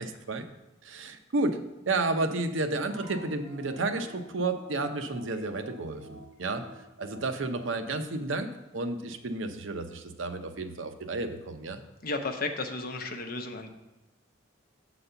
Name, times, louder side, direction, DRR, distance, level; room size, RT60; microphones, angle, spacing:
voice 1, 0.8-1.6 1.9-6.6 7.0-8.5 8.7-11.8, right 2 dB, 85° right, 7 dB, 0.7 m, -31 dB
sound 1, 2.9-7.8, equal, 65° right, 1.7 m, -50 dB
voice 2, 12.0-13.7, left 3 dB, 50° left, 5 dB, 0.8 m, -33 dB
7.8 x 4.2 x 6.8 m, 1.0 s
head